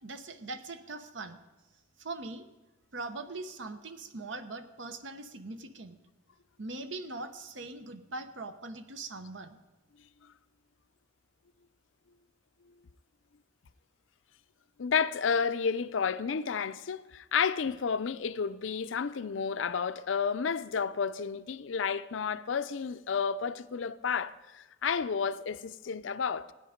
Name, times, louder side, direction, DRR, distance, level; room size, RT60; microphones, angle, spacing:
voice 1, 0.0-1.4 2.0-2.5 2.9-6.0 6.6-9.6, right 3 dB, 75° right, 0.9 m, -41 dB
voice 2, 14.8-26.5, left 6 dB, 80° left, 0.5 m, -31 dB
16.0 x 9.9 x 5.1 m
head